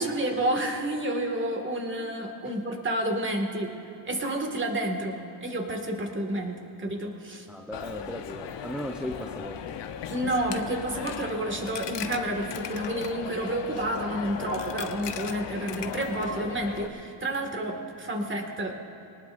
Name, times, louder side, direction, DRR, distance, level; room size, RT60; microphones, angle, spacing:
voice 1, 0.0-3.8 4.1-7.5 10.1-18.7, right 1 dB, 25° right, 2 dB, 2.1 m, -30 dB
voice 2, 7.5-9.6, equal, ahead, 1 dB, 0.7 m, -37 dB
Coin (dropping), 7.7-16.9, left 8 dB, 65° left, 1.0 m, -37 dB
23.0 x 19.5 x 2.6 m, 3.0 s
cardioid pair, 100°, 46 cm